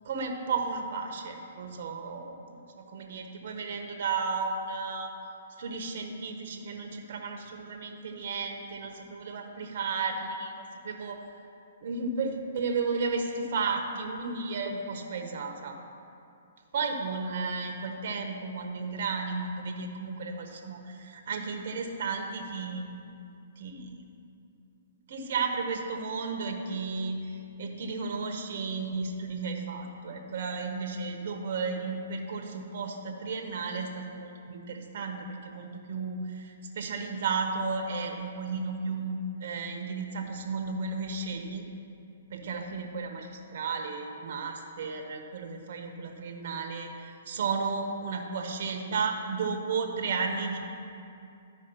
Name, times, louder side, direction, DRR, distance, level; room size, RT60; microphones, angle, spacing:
voice 1, 0.0-2.2 2.8-5.1 5.6-11.2 11.8-15.8 16.7-22.9 23.6-24.0 25.1-41.6 42.3-50.6, right 4 dB, 60° right, 3 dB, 1.1 m, -33 dB
12.5 x 5.0 x 5.5 m, 2.6 s
hypercardioid pair, 145°, 0 cm